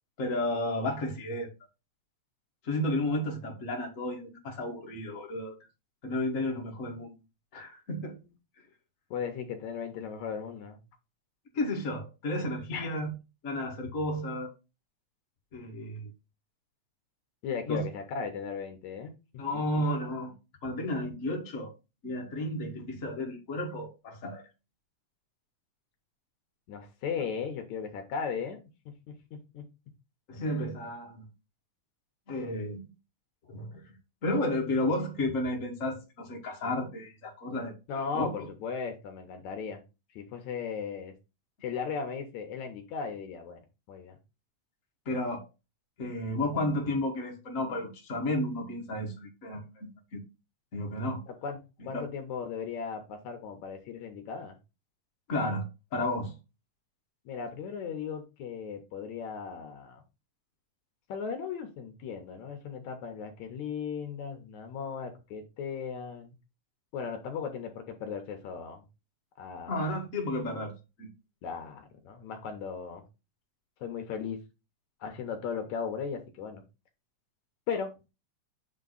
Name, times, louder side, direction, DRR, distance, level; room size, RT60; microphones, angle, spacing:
voice 1, 0.2-1.5 2.6-5.5 6.0-7.2 7.5-8.2 11.5-13.1 13.4-14.5 15.5-16.1 17.7-17.9 19.4-20.3 20.6-21.7 22.0-24.4 30.3-31.3 32.3-32.8 33.5-33.8 34.2-38.5 45.1-45.5 46.0-50.3 50.7-51.2 51.9-52.0 55.3-55.7 55.9-56.3 69.7-71.1, left 1 dB, 30° left, 1.9 m, -32 dB
voice 2, 9.1-10.8 12.7-13.0 17.4-19.1 19.5-19.8 26.7-28.6 29.1-29.6 37.9-39.8 40.2-41.1 41.6-43.6 43.9-44.2 51.3-51.6 51.9-54.6 57.3-60.0 61.1-66.3 66.9-68.8 69.4-70.0 71.4-73.0 73.8-74.4 75.0-76.6 77.7-78.1, left 6 dB, 75° left, 2.5 m, -37 dB
8.1 x 3.5 x 4.0 m
omnidirectional pair, 3.4 m